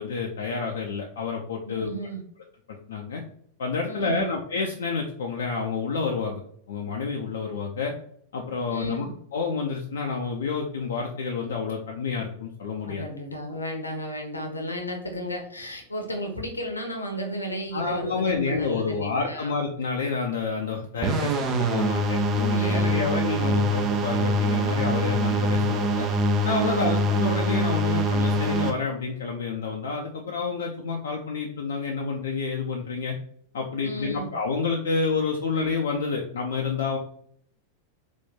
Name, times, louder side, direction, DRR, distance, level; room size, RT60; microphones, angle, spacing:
voice 1, 0.0-1.9 2.7-3.2 3.6-6.4 6.7-7.9 8.3-13.0 17.7-26.1 26.4-33.1 33.5-37.0, left 4 dB, 65° left, 0 dB, 0.5 m, -29 dB
voice 2, 1.6-2.2 3.8-4.3 8.7-9.1 12.8-19.5 22.4-23.0 26.6-27.0 33.8-34.3, equal, 80° left, 3 dB, 0.9 m, -33 dB
sound 1, 21.0-28.7, right 1 dB, 30° right, 0.7 m, -24 dB
4.1 x 2.6 x 3.7 m, 0.64 s
figure-of-eight pair, 90°, 0 cm